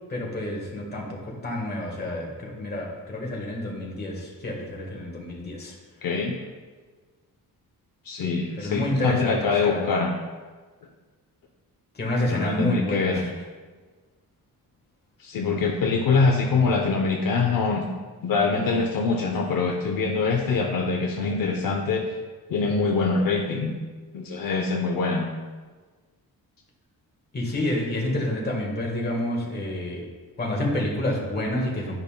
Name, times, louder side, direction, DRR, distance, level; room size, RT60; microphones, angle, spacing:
voice 1, 0.1-5.7 8.6-9.9 11.9-13.2 27.3-30.0 30.4-32.0, left 1 dB, 25° left, -2 dB, 1.5 m, -28 dB
voice 2, 6.0-6.4 8.0-10.1 12.3-13.2 15.2-17.8 18.2-22.1 22.5-23.8 24.1-25.3, left 4 dB, 60° left, 0 dB, 0.7 m, -24 dB
10.5 x 5.3 x 2.2 m, 1.4 s
wide cardioid pair, 155°, 37 cm